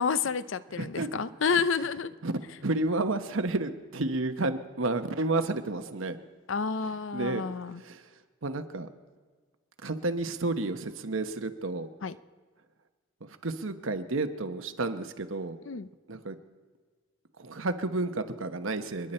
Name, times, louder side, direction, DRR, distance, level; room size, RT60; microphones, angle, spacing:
voice 1, 0.0-2.1 6.5-7.8 12.0-12.2 15.6-15.9, left 5 dB, 65° left, 15 dB, 0.6 m, -29 dB
voice 2, 0.8-1.1 1.5-1.6 2.2-2.3 2.6-6.2 7.1-7.4 7.8-8.0 8.4-8.9 9.8-11.9 13.2-15.6 16.1-16.4 17.4-19.1, right 2 dB, 70° right, 8 dB, 1.0 m, -31 dB
29.5 x 10.5 x 4.4 m, 1.5 s
head